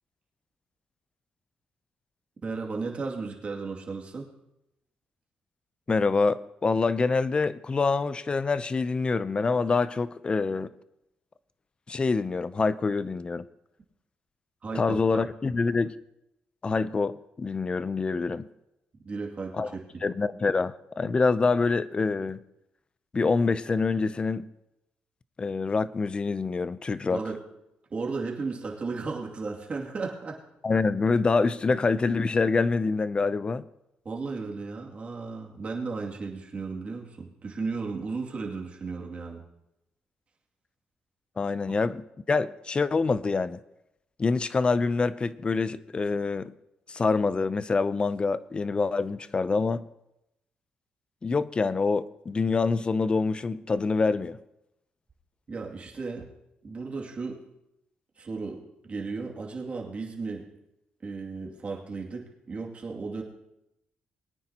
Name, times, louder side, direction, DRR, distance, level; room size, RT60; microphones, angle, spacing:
voice 1, 2.4-4.3 14.6-15.2 19.0-19.8 27.1-27.4 27.9-30.4 34.0-39.4 55.5-56.3 56.6-57.4 58.2-60.5 61.0-63.2, right 4 dB, 40° right, 2.5 m, -35 dB
voice 2, 5.9-10.7 11.9-13.5 14.7-15.9 16.6-18.5 19.6-19.7 20.0-22.4 23.1-24.5 25.4-27.2 30.6-33.6 41.4-43.6 44.2-46.5 46.9-49.8 51.2-54.4, left 4 dB, 30° left, 0.6 m, -26 dB
21.5 x 9.5 x 2.9 m
cardioid pair, 95°, 3 cm